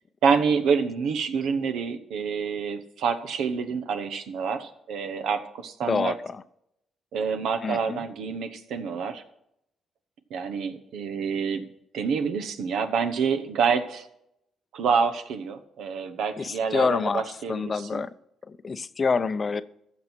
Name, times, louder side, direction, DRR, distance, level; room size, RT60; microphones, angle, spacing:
voice 1, 0.2-6.1 7.1-9.2 10.3-11.7 11.9-14.1 14.7-18.0, right 6 dB, 80° right, 8 dB, 1.0 m, -27 dB
voice 2, 5.8-6.4 7.6-8.0 16.4-17.2 17.5-18.1 18.5-19.6, left 4 dB, 35° left, 15 dB, 0.5 m, -27 dB
15.0 x 6.3 x 4.5 m, 0.79 s
cardioid pair, 90°, 0 cm